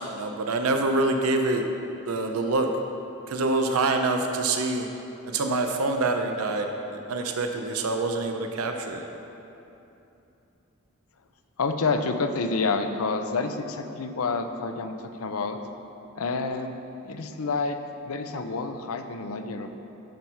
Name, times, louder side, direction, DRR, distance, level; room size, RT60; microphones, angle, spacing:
voice 1, 0.0-1.6 2.0-2.7 3.3-4.9 5.3-9.1, right 2 dB, 90° right, 5 dB, 0.6 m, -26 dB
voice 2, 11.6-15.6 16.1-16.7 17.0-17.8 18.0-19.8, left 4 dB, 80° left, 7 dB, 0.6 m, -28 dB
10.0 x 4.5 x 5.6 m, 2.9 s
head